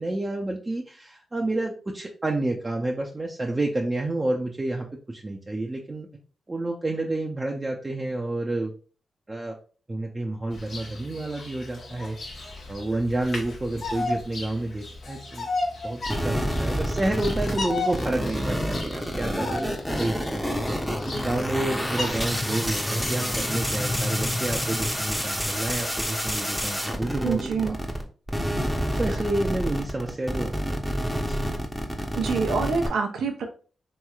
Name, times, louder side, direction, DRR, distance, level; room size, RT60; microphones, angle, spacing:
voice 1, 0.0-6.1 6.5-8.7 9.3-9.5 9.9-12.2 12.7-15.5 15.8-20.7 21.1-27.8 28.3-28.4 29.0-30.8 31.1-31.4, right 2 dB, 30° right, -1 dB, 0.6 m, -29 dB
Bird vocalization bird call bird song, 10.5-22.1, left 2 dB, 65° left, 0.9 m, -35 dB
sound 1, 16.1-28.0 28.3-32.9, equal, ahead, 0.8 m, -28 dB
sound 2, 20.6-25.9, left 1 dB, 25° left, 0.3 m, -33 dB
voice 2, 27.2-27.7 32.1-33.4, right 5 dB, 80° right, 4 dB, 0.5 m, -26 dB
3.0 x 3.0 x 2.3 m, 0.38 s
supercardioid pair, 45°, 0 cm